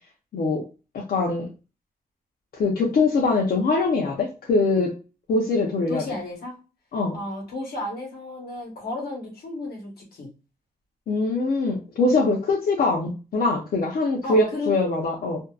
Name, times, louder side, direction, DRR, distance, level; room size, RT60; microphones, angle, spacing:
voice 1, 0.3-0.6 0.9-1.5 2.5-4.9 5.3-6.0 6.9-7.2 11.1-15.4, left 3 dB, 65° left, -2 dB, 0.6 m, -23 dB
voice 2, 5.9-6.5 7.1-10.3 14.2-14.7, left 2 dB, 80° left, 0 dB, 1.1 m, -33 dB
2.6 x 2.1 x 2.3 m, 0.32 s
wide cardioid pair, 175°, 16 cm